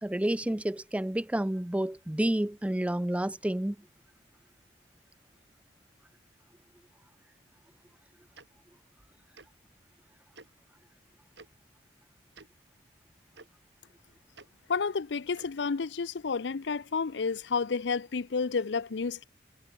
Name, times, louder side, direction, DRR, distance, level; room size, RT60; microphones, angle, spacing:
voice 1, 0.0-3.8, right 1 dB, 10° right, 0.4 m, -29 dB
Tick-tock, 8.3-8.5 9.3-9.5 10.3-10.5 11.3-11.5 12.3-12.5 13.3-13.5 14.3-14.5 15.3-15.5, right 3 dB, 85° right, 6.0 m, -51 dB
voice 2, 14.7-19.2, left 5 dB, 85° left, 0.6 m, -30 dB
head